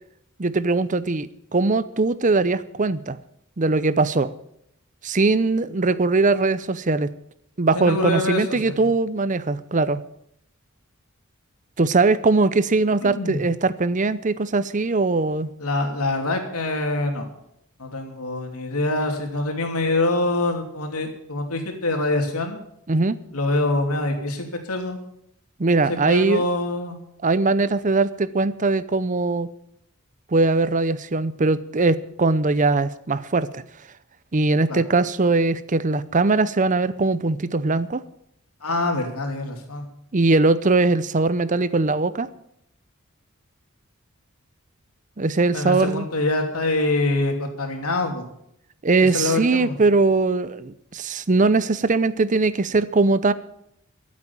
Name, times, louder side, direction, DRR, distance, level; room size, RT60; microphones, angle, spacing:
voice 1, 0.4-3.2 3.6-4.3 5.0-7.1 7.6-10.0 11.8-15.5 22.9-23.2 25.6-26.4 27.2-29.5 30.3-33.6 34.3-38.0 40.1-42.3 45.2-46.0 48.8-53.3, right 3 dB, 35° right, 16 dB, 0.6 m, -21 dB
voice 2, 7.7-8.8 13.0-13.4 15.6-17.3 17.8-22.6 23.3-25.0 25.9-27.0 34.7-34.8 38.6-39.8 45.5-48.2 49.1-49.7, left 2 dB, 80° left, 3 dB, 2.9 m, -25 dB
13.5 x 8.5 x 8.7 m, 0.77 s
head